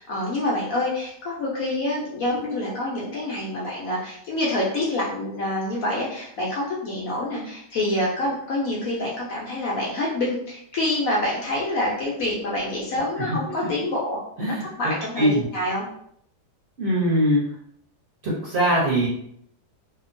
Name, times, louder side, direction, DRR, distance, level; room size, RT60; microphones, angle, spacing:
voice 1, 0.0-14.2 14.5-15.8, left 1 dB, 65° left, -5 dB, 0.9 m, -27 dB
voice 2, 16.8-17.4 18.2-19.1, equal, 50° right, -7 dB, 0.9 m, -21 dB
2.8 x 2.1 x 2.5 m, 0.69 s
omnidirectional pair, 1.8 m